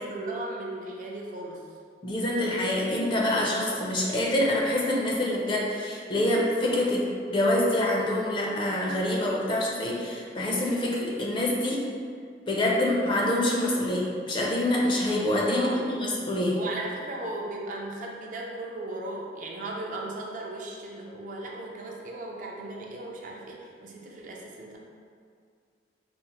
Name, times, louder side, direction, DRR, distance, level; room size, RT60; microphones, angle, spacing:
voice 1, 0.0-1.7 15.5-15.8 16.6-24.8, right 2 dB, 45° right, -1 dB, 0.4 m, -37 dB
voice 2, 2.0-11.8 12.5-16.6, left 1 dB, 30° left, -3 dB, 0.4 m, -26 dB
4.2 x 2.0 x 2.9 m, 2.2 s
head